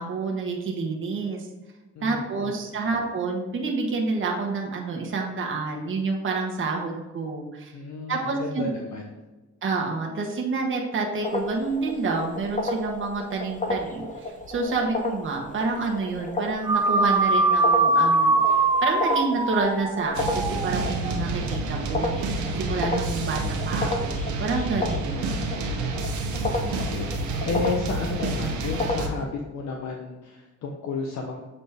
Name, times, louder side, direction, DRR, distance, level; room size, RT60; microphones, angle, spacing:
voice 1, 0.0-1.5 2.0-7.7 8.1-8.7 9.6-23.4 23.6-25.3, right 3 dB, 40° right, 0 dB, 1.2 m, -28 dB
voice 2, 1.9-2.7 7.7-9.2 25.2-25.5 26.2-31.4, left 4 dB, 65° left, 1 dB, 0.8 m, -33 dB
sound 1, 11.2-29.2, left 2 dB, 25° left, 0.9 m, -33 dB
sound 2, 16.6-21.2, right 3 dB, 15° right, 0.4 m, -22 dB
sound 3, 20.1-29.1, right 2 dB, 75° right, 1.0 m, -29 dB
7.3 x 4.1 x 3.5 m, 1.1 s
cardioid pair, 90°, 30 cm